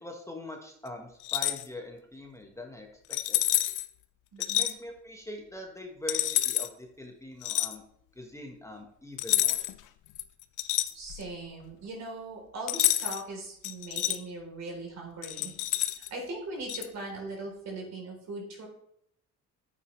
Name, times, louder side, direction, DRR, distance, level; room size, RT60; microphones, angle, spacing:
voice 1, 0.0-3.4 4.5-7.8 8.1-9.6, left 1 dB, 10° left, 2 dB, 1.3 m, -43 dB
sound 1, 1.2-1.6 3.1-3.9 4.4-4.7 6.1-6.7 7.4-7.7 9.2-9.8 10.1-11.3 12.7-13.2 13.6-14.2 15.2-16.1 16.7-16.9, left 14 dB, 90° left, 0.6 m, -28 dB
voice 2, 4.3-4.8 10.9-15.5 16.0-18.7, right 2 dB, 60° right, 0 dB, 3.6 m, -40 dB
9.3 x 8.4 x 3.2 m, 0.72 s
cardioid pair, 90°, 30 cm